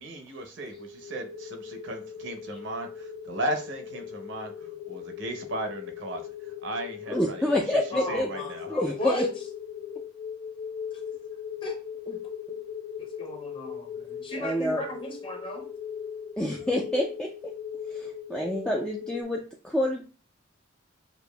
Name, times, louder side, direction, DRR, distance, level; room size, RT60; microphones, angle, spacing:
voice 1, 0.0-7.8 8.1-8.9, right 1 dB, 60° right, 0.7 m, -36 dB
sound 1, 0.7-19.2, left 8 dB, 70° left, 0.9 m, -39 dB
voice 2, 7.1-8.3 8.7-9.2 14.4-14.9 16.4-17.3 17.9-19.4 19.6-20.0, left 1 dB, 5° left, 0.3 m, -27 dB
voice 3, 7.9-9.3 11.6-11.8 13.0-15.7, left 1 dB, 25° left, 0.8 m, -35 dB
6.6 x 2.5 x 2.2 m
head